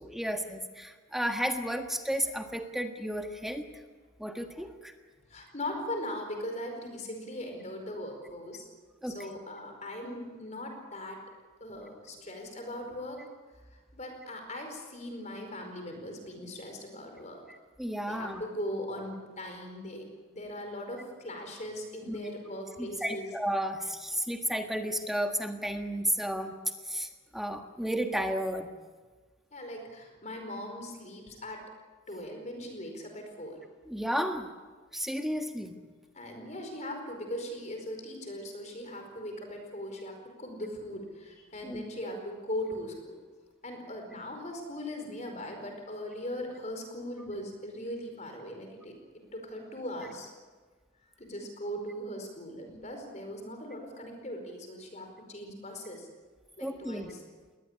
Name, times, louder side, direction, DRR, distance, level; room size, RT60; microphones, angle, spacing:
voice 1, 0.0-3.8 4.2-4.9 9.0-9.2 17.8-18.4 22.1-22.2 22.8-26.6 26.8-28.7 33.9-34.5 34.9-35.7 41.6-42.2 56.6-57.1, equal, ahead, 5 dB, 1.5 m, -33 dB
voice 2, 5.3-8.7 9.1-11.2 11.6-13.2 13.7-17.4 18.1-23.3 29.5-31.6 32.1-33.6 36.1-43.2 43.6-48.9 49.3-50.3 51.2-56.1 56.6-57.2, left 1 dB, 35° left, 4 dB, 4.9 m, -39 dB
21.0 x 18.5 x 9.8 m, 1.4 s
head